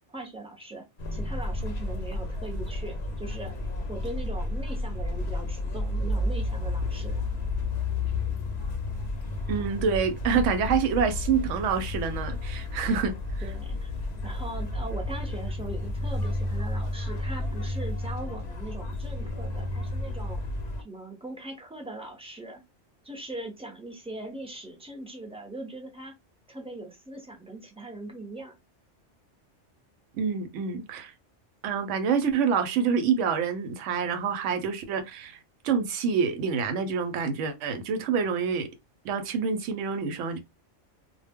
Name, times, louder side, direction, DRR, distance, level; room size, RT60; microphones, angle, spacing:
voice 1, 0.1-0.8 1.1-3.5 3.9-7.2 13.4-13.9 14.2-20.4 20.8-22.6 23.0-26.1 26.5-28.5, right 2 dB, 10° right, 0.4 m, -40 dB
sound 1, 1.0-20.8, left 2 dB, 50° left, 0.5 m, -31 dB
voice 2, 9.5-13.1 30.2-31.1 31.6-38.7 39.0-40.4, right 6 dB, 80° right, 0.9 m, -27 dB
2.1 x 2.0 x 3.4 m
omnidirectional pair, 1.2 m